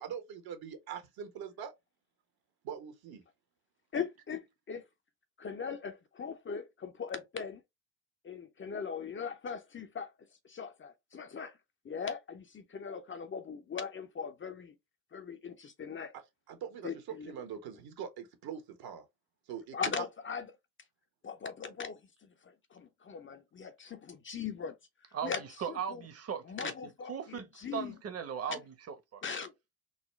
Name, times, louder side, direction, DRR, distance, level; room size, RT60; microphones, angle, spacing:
voice 1, 0.0-1.7 2.6-3.2 16.5-19.0 19.5-20.0, right 8 dB, 60° right, 1.2 m, -43 dB
voice 2, 3.9-4.9 5.4-7.6 8.2-10.1 10.4-11.6 11.8-14.7 15.1-16.1 16.8-17.3 19.7-20.5 21.2-24.7 25.2-25.4 25.7-26.0 26.5-28.0 28.5-28.6 29.2-29.8, left 6 dB, 30° left, 0.6 m, -40 dB
voice 3, 25.1-26.7 27.1-29.2, right 7 dB, 35° right, 1.0 m, -38 dB
3.9 x 2.2 x 3.1 m
hypercardioid pair, 65°, 42 cm